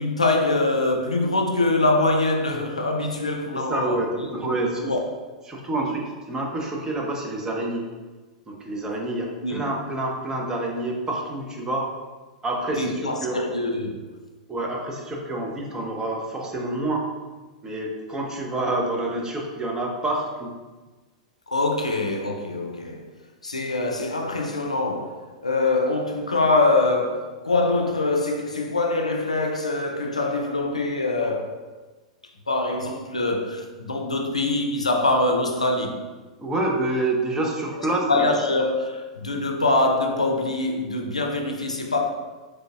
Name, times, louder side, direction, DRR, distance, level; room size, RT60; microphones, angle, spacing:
voice 1, 0.0-4.4 4.7-5.0 9.4-9.6 12.8-14.1 21.5-23.1 23.4-31.6 32.5-36.0 37.8-42.1, left 2 dB, 90° left, 3 dB, 0.4 m, -24 dB
voice 2, 3.7-4.8 5.5-7.9 8.5-11.9 12.4-13.4 14.5-17.0 17.6-20.5 36.4-38.2, right 2 dB, 20° right, 0 dB, 0.7 m, -27 dB
3.8 x 3.2 x 2.4 m, 1.3 s
figure-of-eight pair, 100°, 3 cm